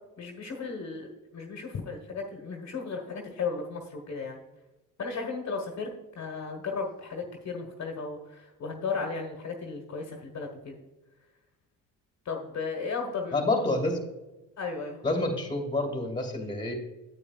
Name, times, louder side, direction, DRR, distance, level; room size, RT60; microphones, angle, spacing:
voice 1, 0.2-4.4 5.0-10.8 12.2-13.4 14.6-15.0, left 4 dB, 50° left, 2 dB, 1.3 m, -35 dB
voice 2, 13.3-14.0 15.0-16.7, left 2 dB, 15° left, 3 dB, 2.1 m, -28 dB
8.8 x 8.6 x 2.4 m, 1.1 s
cardioid pair, 95°, 35 cm